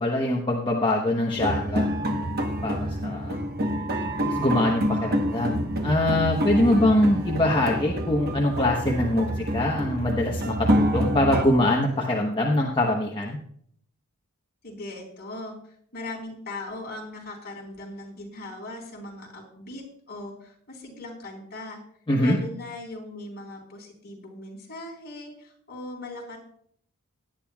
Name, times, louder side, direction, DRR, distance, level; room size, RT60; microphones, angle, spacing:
voice 1, 0.0-1.9 2.6-3.4 4.2-13.4 22.1-22.4, left 1 dB, 20° left, -2 dB, 1.1 m, -23 dB
sound 1, 1.3-11.5, equal, 45° right, 1.1 m, -27 dB
voice 2, 14.6-21.8 22.2-26.4, left 2 dB, 45° left, -2 dB, 4.1 m, -39 dB
17.5 x 10.5 x 2.4 m, 0.64 s
head